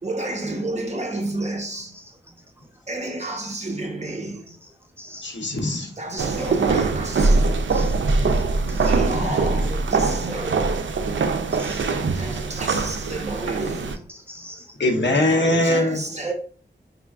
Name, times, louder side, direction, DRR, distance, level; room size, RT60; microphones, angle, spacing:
voice 1, 0.0-2.1 2.9-4.5 6.0-7.9 8.8-11.0 12.1-14.1 15.2-16.3, right 2 dB, 35° right, 1.1 m, -31 dB
voice 2, 5.2-5.9 9.2-9.3 14.8-16.0, left 1 dB, 75° left, 1.0 m, -21 dB
voice 3, 6.1-6.5 7.7-7.9 8.7-9.0 9.7-10.2 11.6-11.8 14.1-14.7 16.1-16.3, right 2 dB, 10° right, 0.6 m, -38 dB
sound 1, 6.2-14.0, right 3 dB, 85° right, 0.5 m, -22 dB
5.4 x 3.4 x 2.4 m
wide cardioid pair, 85°, 19 cm